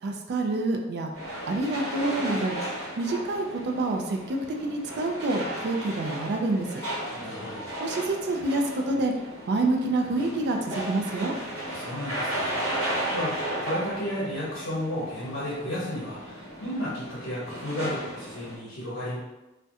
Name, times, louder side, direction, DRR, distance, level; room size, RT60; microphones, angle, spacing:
voice 1, 0.0-1.1 1.5-2.6 3.0-6.8 7.8-9.1 9.5-11.3, right 2 dB, 50° right, 3 dB, 0.3 m, -27 dB
sound 1, 1.1-18.6, right 1 dB, 70° right, 0.9 m, -35 dB
voice 2, 7.1-7.7 11.6-12.5 13.1-13.3 13.6-19.2, left 1 dB, 65° left, -7 dB, 0.7 m, -33 dB
2.3 x 2.1 x 2.7 m, 1.0 s
head